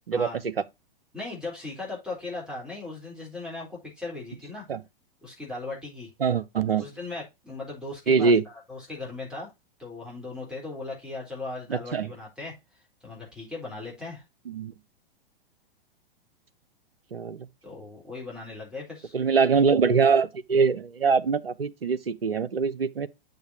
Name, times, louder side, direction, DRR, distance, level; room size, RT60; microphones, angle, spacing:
voice 1, 1.1-4.6 5.2-6.1 6.8-9.5 9.8-12.6 13.0-14.2 17.6-19.2, left 3 dB, 5° right, 3.9 m, -38 dB
voice 2, 6.2-6.9 8.1-8.4 11.7-12.1 14.5-14.7 17.1-17.5 19.1-23.1, right 5 dB, 80° right, 0.8 m, -23 dB
8.0 x 6.9 x 2.8 m
figure-of-eight pair, 105°, 29 cm